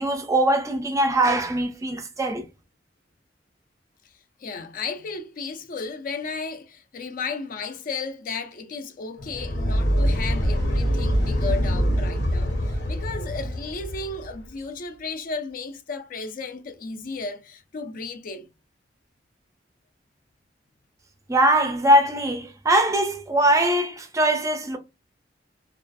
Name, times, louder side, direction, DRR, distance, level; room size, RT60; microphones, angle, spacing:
voice 1, 0.0-2.5 21.3-24.8, right 1 dB, 20° right, 0.4 m, -21 dB
voice 2, 4.4-18.5, left 4 dB, 50° left, 0.4 m, -34 dB
sound 1, 9.2-14.4, equal, 85° left, 0.9 m, -24 dB
2.4 x 2.3 x 2.4 m
head